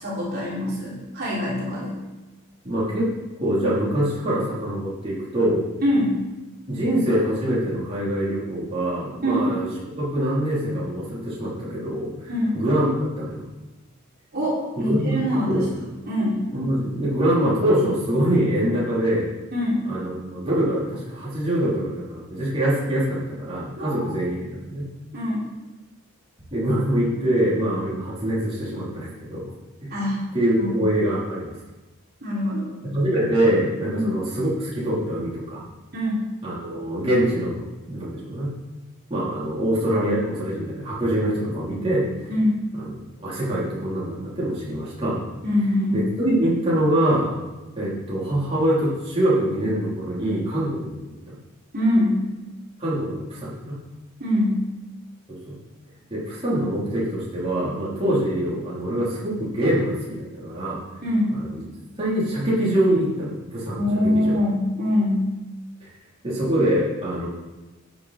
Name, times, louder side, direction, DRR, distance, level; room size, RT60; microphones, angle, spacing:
voice 1, 0.0-2.0 5.8-6.2 9.2-9.5 12.3-12.5 14.3-15.7 16.1-16.4 19.5-19.8 23.8-24.0 25.1-25.4 29.9-30.2 30.5-30.7 32.2-32.7 33.9-34.1 35.9-36.2 42.3-42.6 45.4-46.0 51.7-52.2 54.2-54.6 61.0-61.3 63.8-65.3, left 1 dB, 45° right, -7 dB, 3.4 m, -23 dB
voice 2, 2.6-3.1 3.4-5.6 6.7-9.7 10.0-12.9 13.2-13.4 14.8-15.2 15.5-15.7 16.5-19.3 19.9-24.9 26.5-29.4 29.8-29.9 30.3-31.6 32.9-35.6 36.4-38.5 39.1-42.1 43.2-45.2 45.9-47.3 47.8-51.0 52.8-53.8 55.5-55.6 56.1-60.0 60.3-60.8 61.3-61.6 62.0-64.4 66.2-67.3, right 1 dB, 25° right, -9 dB, 3.5 m, -24 dB
12.5 x 7.9 x 4.3 m, 1.1 s
head